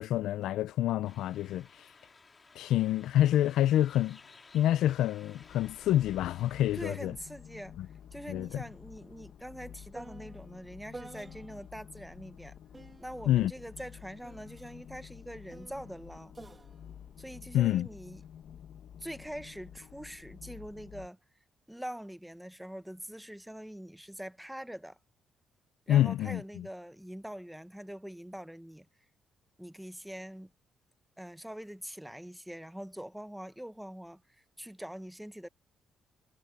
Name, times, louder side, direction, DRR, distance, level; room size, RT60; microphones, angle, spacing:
voice 1, 0.0-1.7 2.6-4.2 4.5-7.1 7.8-7.9 8.3-8.6 13.3-13.5 17.5-17.9 25.9-26.7, left 12 dB, 85° left, 0.5 m, -27 dB
sound 1, 1.0-7.0, left 4 dB, 30° left, 3.0 m, -57 dB
sound 2, 5.4-21.1, left 9 dB, 65° left, 1.9 m, -51 dB
sound 3, 6.6-6.7 7.0-11.8 12.7-18.3 19.1-19.5, right 2 dB, 20° right, 2.2 m, -53 dB
voice 2, 6.7-7.8 8.1-12.6 13.0-16.4 17.2-18.2 19.0-21.2 21.7-25.0 25.9-28.9 29.6-30.5 31.2-34.2 34.6-35.5, equal, 5° right, 1.0 m, -44 dB
cardioid pair, 90°, 0 cm